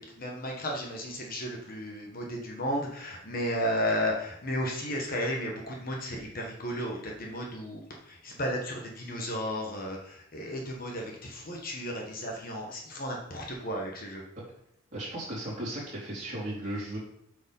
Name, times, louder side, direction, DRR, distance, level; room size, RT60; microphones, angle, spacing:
voice 1, 0.0-14.2, equal, 40° left, 0 dB, 1.3 m, -34 dB
voice 2, 14.9-17.0, right 1 dB, 35° right, -5 dB, 3.6 m, -36 dB
8.0 x 5.1 x 5.3 m, 0.74 s
head